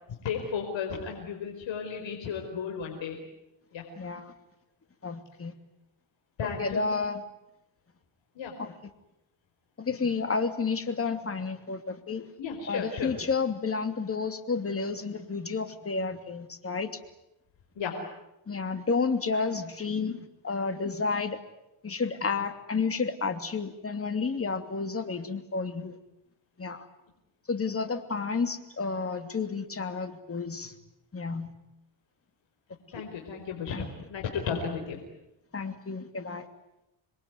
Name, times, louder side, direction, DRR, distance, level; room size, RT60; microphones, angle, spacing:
voice 1, 0.2-3.2 3.7-3.8 6.4-6.8 8.3-8.5 12.4-13.1 17.7-17.9 19.3-19.4 32.9-35.0, left 6 dB, 65° left, 1 dB, 5.0 m, -34 dB
voice 2, 4.0-4.3 5.0-5.5 6.4-7.2 8.6-8.7 9.8-12.3 12.7-16.9 18.5-20.2 20.4-21.4 21.8-26.0 26.6-26.9 27.5-30.7 31.1-31.5 32.9-33.0 33.7-33.9 34.5-34.6 35.5-36.5, left 4 dB, 30° left, 8 dB, 2.8 m, -31 dB
27.5 x 22.0 x 9.6 m, 0.88 s
cardioid pair, 105°, 47 cm